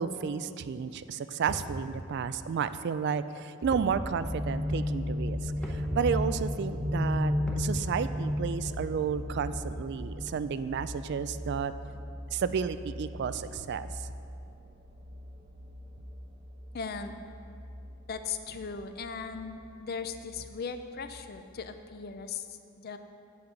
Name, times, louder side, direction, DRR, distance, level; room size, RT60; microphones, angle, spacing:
voice 1, 0.0-11.7 12.3-13.9, right 6 dB, 55° right, 13 dB, 0.3 m, -32 dB
sound 1, 1.5-1.8 3.7-4.0 4.3-4.4 5.6-5.9 7.5-7.8, equal, 5° left, 0.9 m, -38 dB
sound 2, 3.6-21.5 21.9-22.0, left 1 dB, 35° right, 0.8 m, -36 dB
voice 2, 16.7-17.1 18.1-22.5 22.8-23.0, left 5 dB, 45° left, 9 dB, 0.5 m, -38 dB
8.6 x 7.7 x 5.1 m, 2.6 s
head